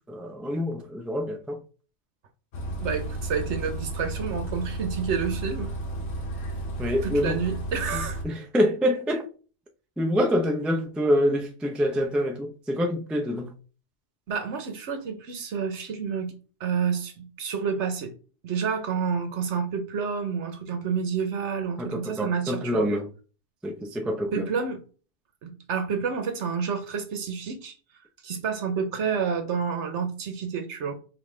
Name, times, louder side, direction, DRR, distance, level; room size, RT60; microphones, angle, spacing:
voice 1, 0.1-1.6 6.8-7.4 8.2-9.3 10.0-13.5 21.8-23.1 23.6-24.5, equal, ahead, 0.3 m, -26 dB
Bus, 2.5-8.2, right 2 dB, 65° left, 1.2 m, -33 dB
voice 2, 2.8-5.7 7.0-8.2 14.3-16.3 16.6-18.1 18.4-22.9 24.3-24.8 25.4-27.7 28.2-30.9, right 6 dB, 75° right, 1.2 m, -29 dB
5.3 x 2.8 x 3.3 m
omnidirectional pair, 1.2 m